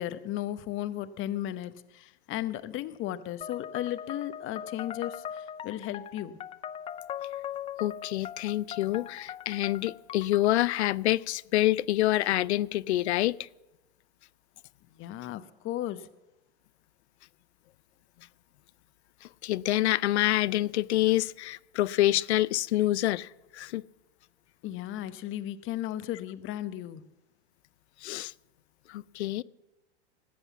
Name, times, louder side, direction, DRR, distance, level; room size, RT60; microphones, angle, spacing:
voice 1, 0.0-6.3 14.9-16.1 24.6-27.0, left 13 dB, 40° left, 1.0 m, -35 dB
sound 1, 3.4-10.6, left 9 dB, 20° left, 0.4 m, -40 dB
voice 2, 7.8-13.5 19.2-23.8 28.0-28.3 28.9-29.4, left 15 dB, 80° left, 0.5 m, -27 dB
19.0 x 8.0 x 7.2 m
hypercardioid pair, 110°, 33 cm